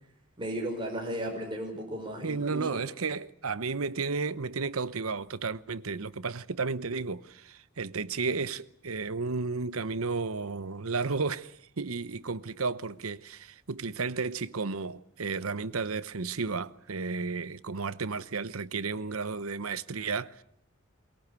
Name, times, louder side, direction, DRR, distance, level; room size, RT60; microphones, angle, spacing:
voice 1, 0.4-2.8, right 1 dB, 25° right, 5.6 m, -35 dB
voice 2, 2.2-20.4, right 4 dB, 80° right, 0.9 m, -33 dB
23.0 x 22.0 x 8.3 m
head